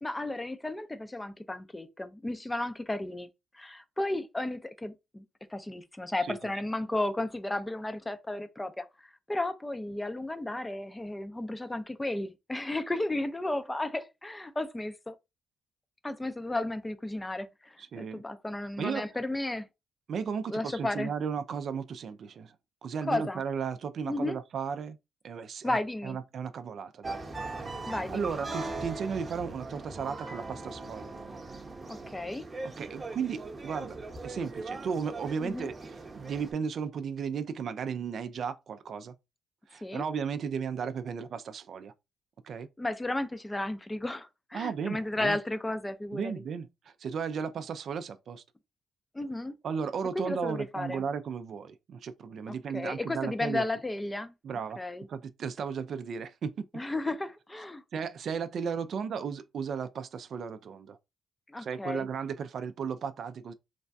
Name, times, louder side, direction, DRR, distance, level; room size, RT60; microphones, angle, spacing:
voice 1, 0.0-3.3 3.5-5.2 5.5-15.1 16.0-19.7 20.5-21.1 23.1-23.4 24.1-24.4 25.6-26.2 27.9-28.4 31.9-32.5 35.4-35.7 39.8-40.0 42.8-46.4 49.1-49.5 50.1-51.0 52.5-54.3 54.8-55.1 56.7-57.8 61.5-62.1, left 2 dB, 15° left, 0.5 m, -34 dB
voice 2, 6.2-6.5 17.9-18.2 18.8-19.1 20.1-22.5 22.8-25.0 25.2-27.2 28.1-31.2 32.6-39.1 39.7-41.9 42.4-42.7 44.5-45.4 46.1-48.4 49.6-53.6 54.4-54.8 55.1-56.5 57.9-61.0 61.6-63.5, right 6 dB, 60° right, 0.3 m, -35 dB
sound 1, 27.0-36.5, right 3 dB, 30° right, 0.8 m, -40 dB
3.2 x 2.2 x 2.6 m
cardioid pair, 90°, 0 cm